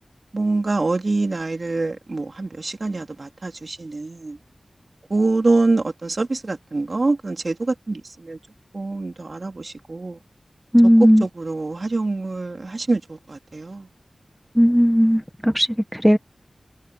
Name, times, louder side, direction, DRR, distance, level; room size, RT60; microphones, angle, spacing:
voice 1, 0.3-4.4 5.1-8.4 8.7-10.2 11.0-13.9, right 3 dB, 55° right, 3.4 m, -25 dB
voice 2, 10.7-11.2 14.6-16.2, equal, ahead, 1.3 m, -16 dB
wide cardioid pair, 65°, 0 cm